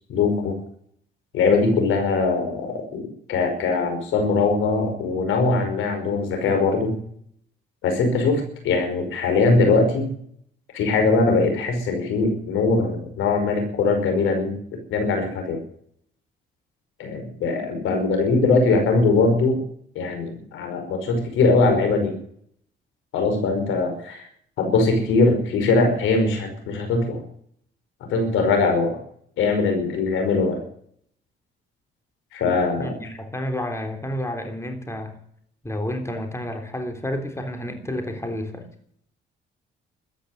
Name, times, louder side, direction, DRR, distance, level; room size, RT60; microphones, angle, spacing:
voice 1, 0.1-0.6 1.3-3.0 3.3-6.9 7.8-10.1 10.7-14.6 14.9-15.6 17.0-19.6 20.0-22.1 23.1-24.2 24.6-27.2 28.1-29.0 29.4-30.6 32.3-33.0, left 3 dB, 85° left, 5 dB, 5.3 m, -21 dB
voice 2, 32.8-35.2 35.6-38.7, left 1 dB, 15° left, 5 dB, 3.5 m, -30 dB
14.0 x 10.0 x 9.9 m, 0.63 s
cardioid pair, 90°, 20 cm